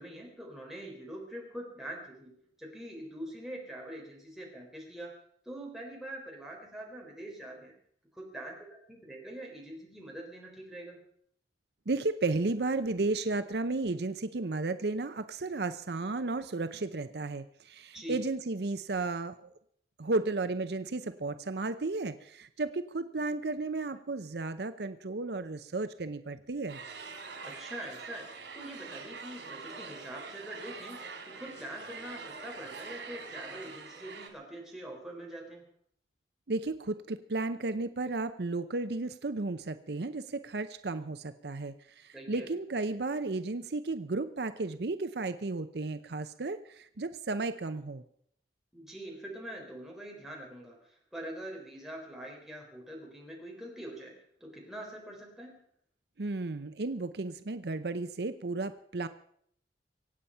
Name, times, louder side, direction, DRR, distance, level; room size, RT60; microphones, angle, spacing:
voice 1, 0.0-5.1 5.4-7.7 8.1-11.0 17.9-18.2 27.4-35.6 42.1-42.5 48.7-55.6, right 1 dB, ahead, -2 dB, 3.9 m, -44 dB
voice 2, 11.9-19.5 20.0-26.8 36.5-48.0 56.2-59.1, right 3 dB, 70° right, 11 dB, 0.7 m, -33 dB
sound 1, 26.7-34.3, right 4 dB, 85° right, 3.2 m, -44 dB
24.5 x 8.7 x 5.6 m, 0.66 s
head